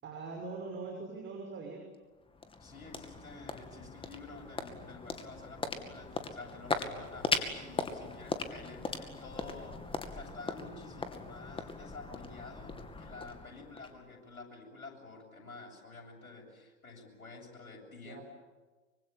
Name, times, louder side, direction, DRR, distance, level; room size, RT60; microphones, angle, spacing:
voice 1, 0.0-1.8 18.0-18.2, right 4 dB, 25° right, 1 dB, 6.2 m, -42 dB
sound 1, 1.9-14.4, left 3 dB, 10° left, 2.5 m, -39 dB
voice 2, 2.6-18.2, left 3 dB, 85° left, 0 dB, 7.5 m, -49 dB
25.0 x 24.5 x 8.8 m, 1.3 s
figure-of-eight pair, 95°, 42 cm